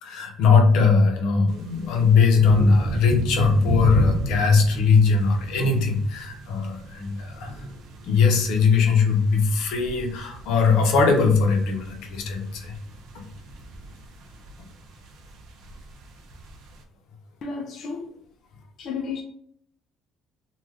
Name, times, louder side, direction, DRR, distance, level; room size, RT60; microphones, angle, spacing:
voice 1, 0.0-7.7 8.0-12.7, left 5 dB, 75° left, 0.7 m, -20 dB
sound 1, 1.5-16.8, right 2 dB, 65° right, 0.5 m, -33 dB
voice 2, 17.4-18.2 18.8-19.2, left 5 dB, 45° left, 0.3 m, -32 dB
2.4 x 2.3 x 3.2 m
cardioid pair, 155°, 0 cm